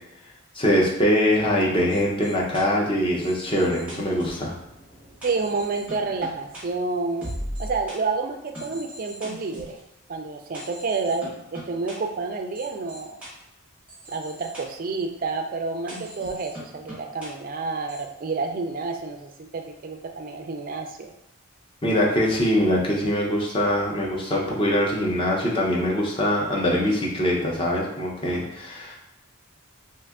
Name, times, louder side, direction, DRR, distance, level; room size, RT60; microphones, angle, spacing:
voice 1, 0.5-4.5 21.8-29.0, equal, 25° left, -3 dB, 0.5 m, -23 dB
sound 1, 1.9-8.0 8.5-9.8 10.5-11.9 12.5-13.3 13.9-14.6 15.9-17.3 17.9-18.0, equal, 5° right, 0.8 m, -40 dB
voice 2, 5.2-7.3 7.6-9.8 10.1-13.2 14.1-21.1, right 4 dB, 40° right, 4 dB, 0.3 m, -29 dB
2.7 x 2.4 x 3.4 m, 0.82 s
head